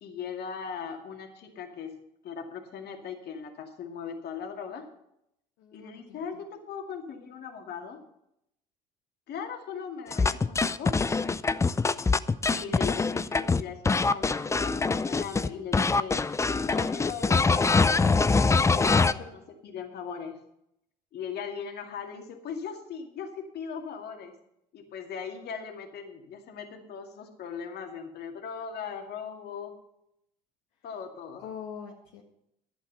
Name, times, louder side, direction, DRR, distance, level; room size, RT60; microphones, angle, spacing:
voice 1, 0.0-1.9 2.2-4.9 5.7-8.0 9.3-11.0 12.5-16.2 16.5-18.2 18.7-20.4 21.1-24.3 24.7-29.7 30.8-31.4, left 6 dB, 50° left, 3 dB, 2.3 m, -39 dB
voice 2, 5.6-6.4 18.8-19.2 31.4-32.2, left 7 dB, 70° left, -1 dB, 1.6 m, -44 dB
sound 1, 10.1-15.5 15.7-19.1, left 4 dB, 15° left, 0.5 m, -24 dB
11.5 x 8.1 x 6.8 m, 0.79 s
hypercardioid pair, 65°, 21 cm